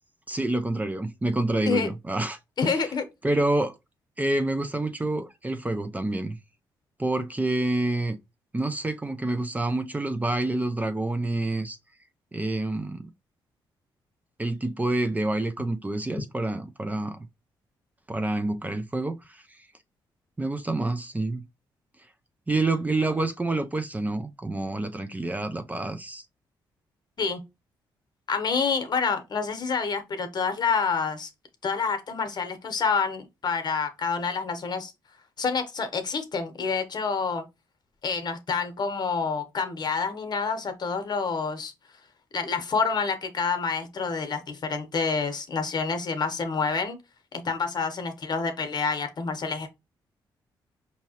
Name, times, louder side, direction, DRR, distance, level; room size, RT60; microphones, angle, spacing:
voice 1, 0.3-2.4 2.6-2.9 3.2-3.7 4.2-6.4 7.0-8.2 8.5-11.8 12.3-13.1 14.4-17.2 18.1-19.4 20.4-21.4 22.5-26.2, right 2 dB, 15° right, 0.5 m, -28 dB
voice 2, 2.6-3.1 27.2-27.4 28.3-31.3 31.6-34.9 35.4-37.4 38.0-41.7 42.3-47.0 47.3-49.7, left 5 dB, 50° left, 0.9 m, -28 dB
4.9 x 2.8 x 2.8 m
cardioid pair, 65°, 9 cm